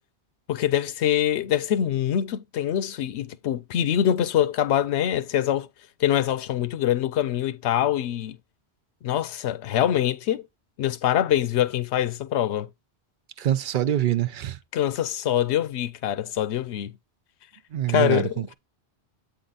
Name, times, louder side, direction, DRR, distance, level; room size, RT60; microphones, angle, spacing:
voice 1, 0.5-5.7 6.0-8.4 9.0-10.4 10.8-12.7 14.7-16.9 17.9-18.5, left 11 dB, 85° left, 0.9 m, -24 dB
voice 2, 13.4-14.6 17.7-18.5, right 12 dB, 60° right, 0.6 m, -25 dB
8.2 x 3.8 x 4.0 m
omnidirectional pair, 1.1 m